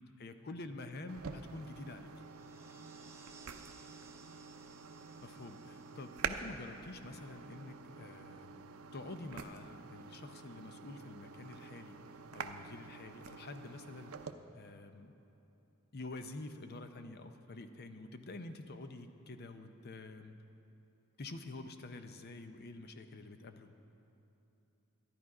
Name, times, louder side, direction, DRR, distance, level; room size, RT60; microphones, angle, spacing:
voice 1, 0.0-2.1 5.2-12.0 12.3-14.1 14.5-15.1 15.9-20.3 21.2-23.7, left 2 dB, 50° left, 8 dB, 0.6 m, -48 dB
sound 1, 1.1-14.3, right 5 dB, 80° right, 0.6 m, -47 dB
sound 2, 2.1-7.9, right 5 dB, 10° right, 0.6 m, -62 dB
13.0 x 11.0 x 4.8 m, 2.9 s
head